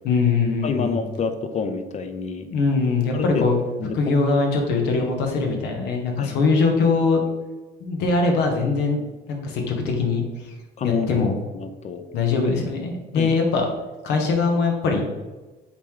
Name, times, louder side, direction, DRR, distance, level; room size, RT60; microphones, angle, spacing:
voice 1, 0.0-1.0 2.5-3.6 3.9-7.2 7.8-9.0 9.3-10.2 10.8-11.3 12.1-13.7 14.0-15.0, left 4 dB, 85° left, 2 dB, 1.2 m, -21 dB
voice 2, 0.6-2.5 3.1-3.4 3.8-4.2 6.2-6.4 10.8-11.3 11.5-12.1 13.1-13.4, left 5 dB, 45° left, 8 dB, 0.7 m, -28 dB
8.0 x 3.1 x 3.8 m, 1.2 s
cardioid pair, 110°, 17 cm